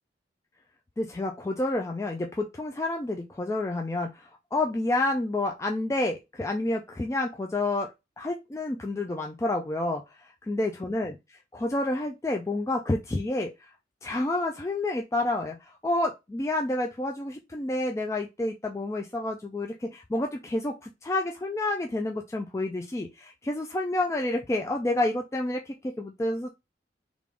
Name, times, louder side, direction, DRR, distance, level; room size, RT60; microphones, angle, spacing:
voice 1, 1.0-7.9 8.2-10.0 10.5-11.2 11.5-13.5 14.0-26.5, left 2 dB, 15° left, 2 dB, 0.3 m, -29 dB
3.4 x 2.5 x 3.4 m, 0.23 s
head